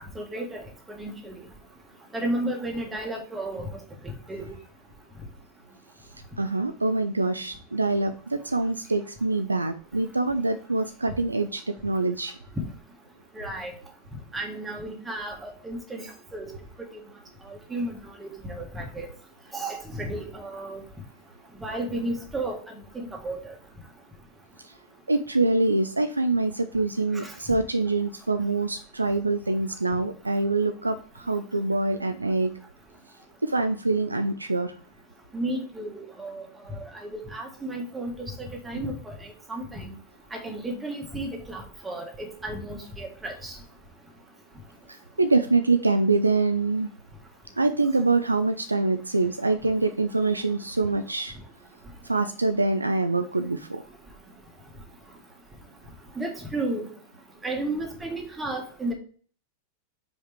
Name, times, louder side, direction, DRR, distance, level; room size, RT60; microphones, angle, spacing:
voice 1, 0.2-0.6 1.0-1.4 2.1-3.7 4.3-4.5 13.4-13.7 14.3-16.0 16.3-16.5 17.7-17.9 18.2-19.1 19.5-20.8 21.6-22.6 23.0-23.4 27.2-27.3 35.3-36.4 37.0-38.1 38.4-39.9 40.3-43.5 56.2-56.9 57.4-58.9, right 1 dB, 10° right, 2 dB, 1.7 m, -33 dB
voice 2, 6.4-12.3 25.1-32.5 33.4-34.7 45.2-46.9 47.6-51.3 52.1-53.8, right 3 dB, 80° right, 8 dB, 0.4 m, -25 dB
5.2 x 5.0 x 4.7 m, 0.43 s
figure-of-eight pair, 90°, 0 cm